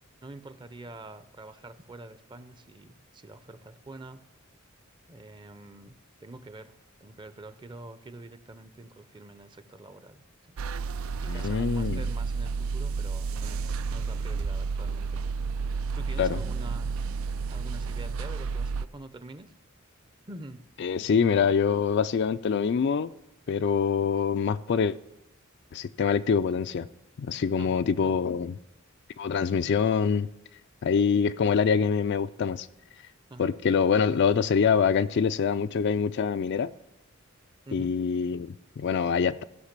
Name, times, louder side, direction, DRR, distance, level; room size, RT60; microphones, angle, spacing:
voice 1, 0.2-4.2 5.1-10.6 11.0-15.2 15.9-17.0 17.5-19.5 20.3-20.7 27.6-28.2 33.3-33.5 37.6-38.0, right 2 dB, 20° right, 0.6 m, -46 dB
sound 1, 10.6-18.9, right 5 dB, 70° right, 0.4 m, -31 dB
voice 2, 11.3-12.0 16.2-16.4 20.8-23.1 23.5-25.0 25.7-26.9 27.2-28.5 29.2-30.3 30.8-32.7 33.4-36.7 37.7-39.4, left 6 dB, 55° left, 0.4 m, -25 dB
15.0 x 5.8 x 6.7 m
head